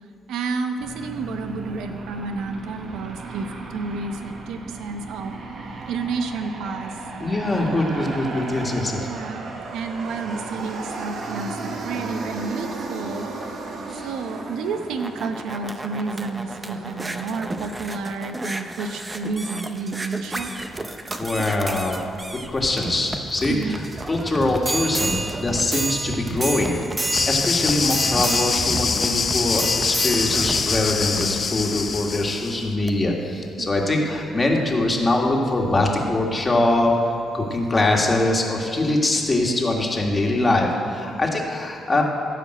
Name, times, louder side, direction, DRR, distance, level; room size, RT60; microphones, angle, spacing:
voice 1, 0.3-5.3 5.9-6.9 9.0-13.3 13.9-20.5 23.5-23.8 33.6-33.8 41.1-41.2, right 4 dB, 85° right, 7 dB, 0.9 m, -30 dB
Aircraft, 0.8-18.2, right 3 dB, 65° right, 1.3 m, -35 dB
voice 2, 7.2-9.1 13.9-14.1 21.2-22.0 22.5-23.8 24.1-26.8 27.3-42.0, left 2 dB, 25° left, 0 dB, 1.8 m, -23 dB
sound 1, 14.7-32.3 32.9-33.0, right 2 dB, 20° right, 0.7 m, -31 dB
sound 2, 27.1-32.6, left 5 dB, 40° left, 0.6 m, -24 dB
15.5 x 5.2 x 7.8 m, 2.5 s
cardioid pair, 90°, 0 cm